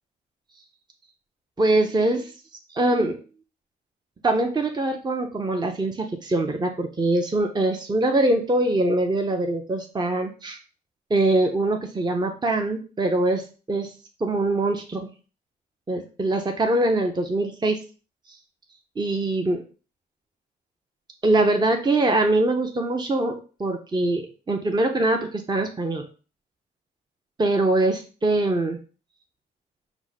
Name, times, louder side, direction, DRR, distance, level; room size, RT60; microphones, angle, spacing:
voice 1, 1.6-2.3 2.7-3.2 4.2-10.6 11.1-13.9 14.2-15.1 15.9-17.8 19.0-19.6 21.2-26.1 27.4-28.8, right 2 dB, 20° right, 4 dB, 0.8 m, -23 dB
4.6 x 2.2 x 4.1 m, 0.36 s
hypercardioid pair, 50°, 20 cm